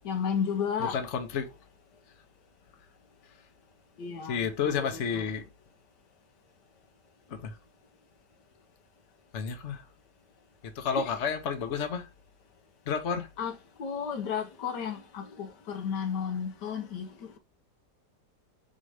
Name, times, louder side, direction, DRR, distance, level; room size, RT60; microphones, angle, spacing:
voice 1, 0.0-1.0 4.0-4.4 4.6-5.3 10.9-11.1 13.4-17.1, left 7 dB, 70° left, 1.6 m, -33 dB
voice 2, 0.8-1.5 4.3-5.4 7.3-7.6 9.3-9.8 10.7-12.1 12.9-13.3, left 6 dB, 45° left, 1.2 m, -31 dB
4.7 x 4.3 x 4.8 m
omnidirectional pair, 1.9 m